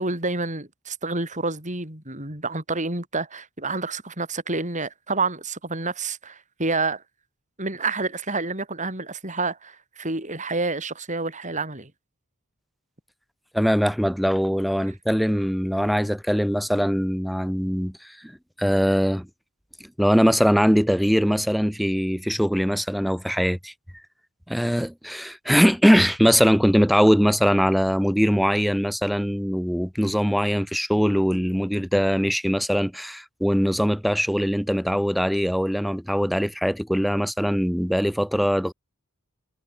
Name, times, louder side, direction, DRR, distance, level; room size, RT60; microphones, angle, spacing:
voice 1, 0.0-7.0 7.6-11.9, right 3 dB, 35° right, 7.8 m, -28 dB
voice 2, 13.5-18.0 18.2-18.3 18.6-19.3 20.0-23.7 24.5-38.7, equal, ahead, 4.9 m, -21 dB
head